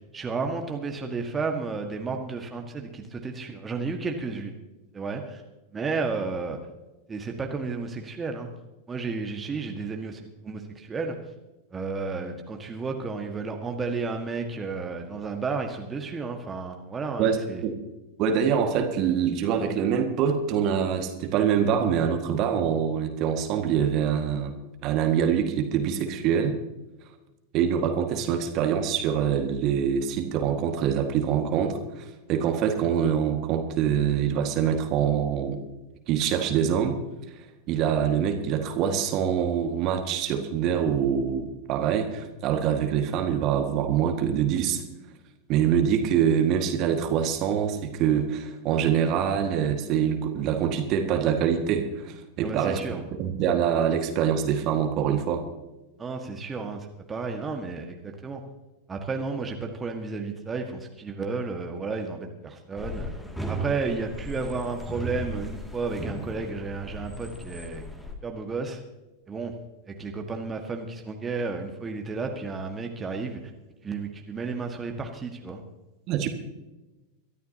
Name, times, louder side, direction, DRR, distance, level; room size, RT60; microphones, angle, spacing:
voice 1, 0.1-4.5 4.9-5.4 5.7-6.6 7.1-8.5 8.9-11.2 11.7-17.6 52.4-53.0 56.0-58.4 58.9-63.1 63.5-67.8 68.2-68.8 69.3-69.5 69.9-73.4 73.8-75.6, right 4 dB, 15° right, 3 dB, 1.7 m, -32 dB
voice 2, 17.2-17.8 18.2-24.5 24.8-26.6 27.5-35.6 36.1-37.0 37.4-44.8 45.5-55.4 76.1-76.3, right 8 dB, 40° right, 6 dB, 1.8 m, -25 dB
sound 1, 62.8-68.1, right 1 dB, 5° left, 2.4 m, -36 dB
23.5 x 13.0 x 2.9 m, 1.1 s
figure-of-eight pair, 90°, 0 cm